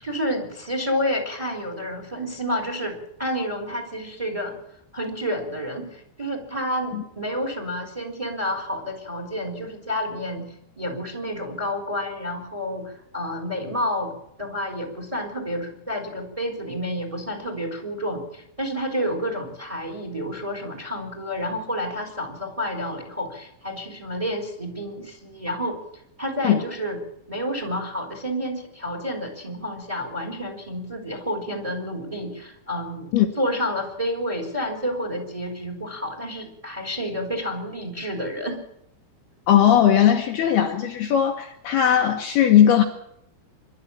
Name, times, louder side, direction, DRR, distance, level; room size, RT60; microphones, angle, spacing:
voice 1, 0.0-4.6 4.9-25.8 26.2-27.0 27.3-38.6, equal, 10° right, 5 dB, 3.3 m, -30 dB
voice 2, 39.5-42.8, left 10 dB, 65° left, 4 dB, 2.9 m, -18 dB
25.5 x 13.0 x 8.7 m, 0.76 s
omnidirectional pair, 5.6 m